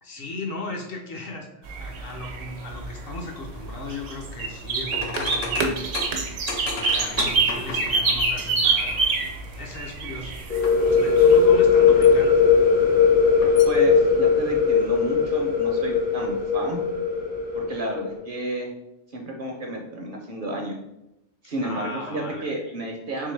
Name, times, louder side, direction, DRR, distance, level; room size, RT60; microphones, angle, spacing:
voice 1, 0.0-5.8 6.7-9.1 9.6-10.3 10.9-12.4 21.6-22.5, left 2 dB, 55° left, 1 dB, 0.8 m, -37 dB
sound 1, 1.7-11.4, right 4 dB, 80° right, 1.0 m, -26 dB
sound 2, 4.9-8.2 10.6-10.8 11.4-12.3 13.3-13.7, left 4 dB, 90° left, 1.0 m, -34 dB
sound 3, 10.5-18.1, left 6 dB, 10° left, 0.4 m, -19 dB
voice 2, 13.6-16.8 17.5-18.7 19.1-20.8 21.4-23.3, right 2 dB, 55° right, 1 dB, 0.7 m, -31 dB
3.7 x 3.2 x 3.2 m, 0.88 s
omnidirectional pair, 1.2 m